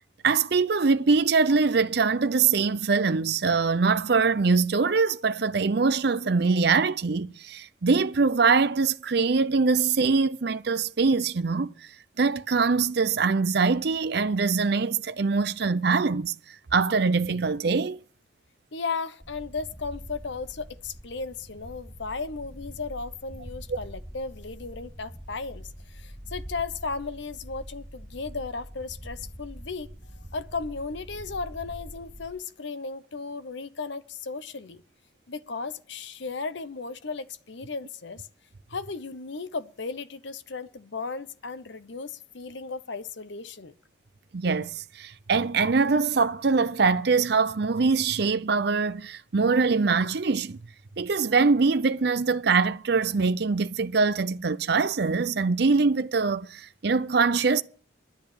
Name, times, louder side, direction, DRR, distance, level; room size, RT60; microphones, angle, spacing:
voice 1, 0.2-11.7 12.2-16.3 16.7-18.0 44.3-50.6 51.0-57.6, right 4 dB, 55° right, 0.6 m, -23 dB
voice 2, 18.7-34.8 35.3-38.3 38.7-43.7, left 4 dB, 65° left, 0.8 m, -35 dB
sound 1, 19.2-32.3, equal, 5° right, 4.5 m, -44 dB
10.5 x 9.2 x 8.5 m
head